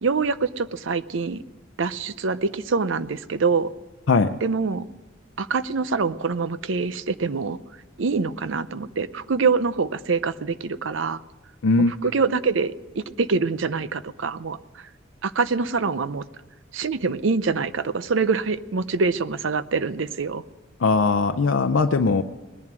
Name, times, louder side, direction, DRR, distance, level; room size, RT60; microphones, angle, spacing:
voice 1, 0.0-1.4 1.8-3.7 4.4-4.9 5.4-7.6 8.0-11.2 11.8-14.8 15.2-16.2 16.7-20.4, right 4 dB, 75° right, 14 dB, 0.6 m, -25 dB
voice 2, 11.6-11.9 20.8-22.2, left 4 dB, 85° left, 7 dB, 0.6 m, -19 dB
20.0 x 11.0 x 6.1 m, 1.2 s
head